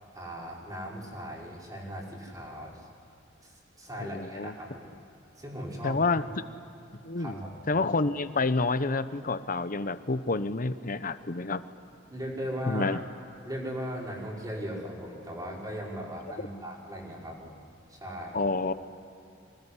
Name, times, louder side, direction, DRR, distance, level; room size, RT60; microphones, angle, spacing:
voice 1, 0.1-2.8 3.4-4.9 5.4-6.3 7.2-7.5 12.0-13.1 13.4-17.5 17.9-18.4, equal, 20° right, -3 dB, 5.4 m, -38 dB
voice 2, 4.0-4.5 5.8-6.2 7.0-7.4 7.7-11.6 12.7-13.0 18.3-18.7, left 3 dB, 45° left, 12 dB, 1.0 m, -28 dB
25.0 x 19.5 x 9.9 m, 2.8 s
head